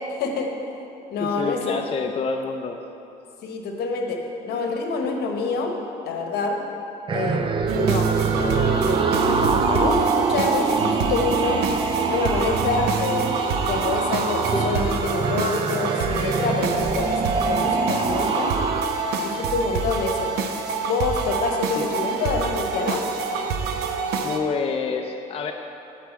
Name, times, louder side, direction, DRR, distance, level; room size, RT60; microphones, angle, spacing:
voice 1, 0.2-0.5 1.1-1.8 3.4-4.2 4.4-5.7 6.0-6.6 7.1-8.1 8.3-11.6 12.1-13.4 13.7-18.5 19.2-20.3 20.9-23.0, left 4 dB, 75° left, 3 dB, 1.1 m, -26 dB
voice 2, 1.2-2.8 21.7-21.9 24.2-25.5, left 5 dB, 35° left, 3 dB, 0.5 m, -27 dB
sound 1, 7.1-18.8, right 5 dB, 30° right, 0.5 m, -24 dB
sound 2, 7.7-24.4, right 5 dB, 75° right, 0.7 m, -27 dB
sound 3, 14.5-17.8, left 2 dB, 5° left, 1.0 m, -35 dB
8.5 x 4.6 x 7.3 m, 2.8 s
cardioid pair, 110°, 17 cm